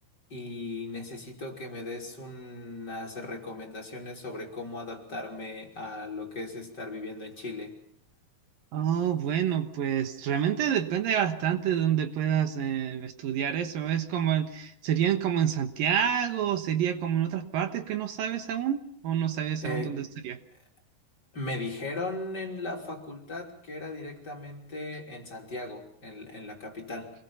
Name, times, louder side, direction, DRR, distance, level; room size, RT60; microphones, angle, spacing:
voice 1, 0.3-7.8 19.6-20.0 21.3-27.1, left 2 dB, 30° left, 1 dB, 3.5 m, -37 dB
voice 2, 8.7-20.4, right 9 dB, 70° right, 9 dB, 2.9 m, -28 dB
26.5 x 20.5 x 5.7 m, 0.71 s
omnidirectional pair, 4.3 m